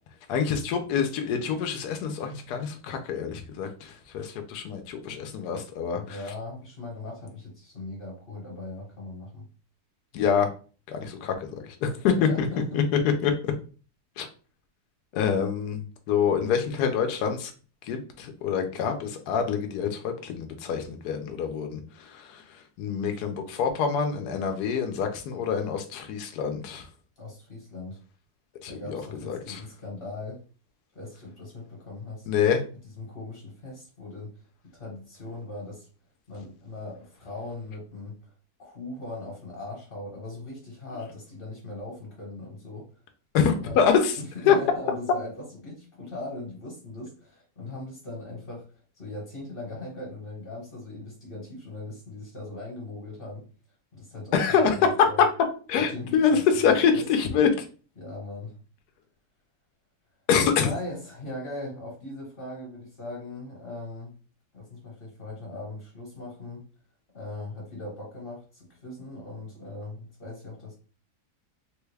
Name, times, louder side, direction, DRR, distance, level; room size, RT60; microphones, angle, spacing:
voice 1, 0.3-6.2 10.1-10.5 10.9-12.5 12.7-12.8 13.2-13.5 14.2-14.3 15.1-17.5 17.8-26.9 28.6-29.6 32.3-32.6 43.3-44.2 44.5-44.6 54.3-55.3 55.7-57.6 60.3-60.7, left 7 dB, 80° left, 5 dB, 1.1 m, -26 dB
voice 2, 6.1-9.4 12.1-12.8 27.2-28.0 28.6-30.4 30.9-32.3 32.8-34.4 34.7-35.9 36.3-38.2 38.6-42.9 43.6-43.8 44.2-48.7 48.9-53.5 53.9-55.2 55.7-57.0 58.0-58.6 60.6-64.1 64.5-66.7 67.1-70.7, left 2 dB, 35° left, -3 dB, 1.4 m, -39 dB
3.4 x 2.3 x 3.2 m, 0.38 s
omnidirectional pair, 1.7 m